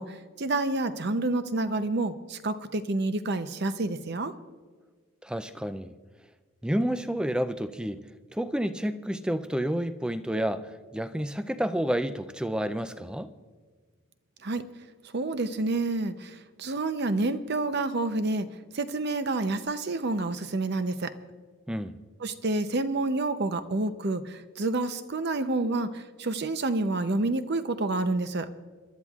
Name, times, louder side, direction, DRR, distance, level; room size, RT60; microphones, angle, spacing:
voice 1, 0.0-4.3 14.4-14.6 15.1-18.5 18.7-21.1 22.2-28.5, right 2 dB, 50° right, 10 dB, 0.7 m, -29 dB
voice 2, 5.2-5.9 6.6-8.0 8.3-13.3 21.7-21.9, equal, 5° right, 11 dB, 0.4 m, -30 dB
28.5 x 12.5 x 2.4 m, 1.5 s
head